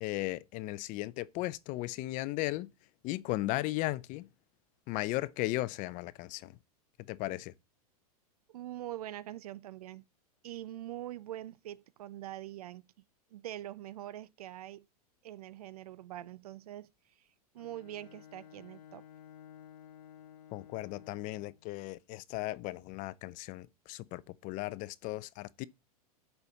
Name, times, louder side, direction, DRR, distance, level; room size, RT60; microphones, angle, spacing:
voice 1, 0.0-2.7 3.0-4.3 4.9-6.6 7.1-7.5 20.5-25.6, left 18 dB, 40° left, 0.6 m, -36 dB
voice 2, 8.5-10.0 10.4-12.9 13.3-14.8 15.2-16.9 17.5-19.0, right 13 dB, 70° right, 0.9 m, -43 dB
Bowed string instrument, 17.6-21.7, left 9 dB, 80° left, 1.0 m, -54 dB
6.8 x 5.8 x 6.7 m
hypercardioid pair, 105°, 20 cm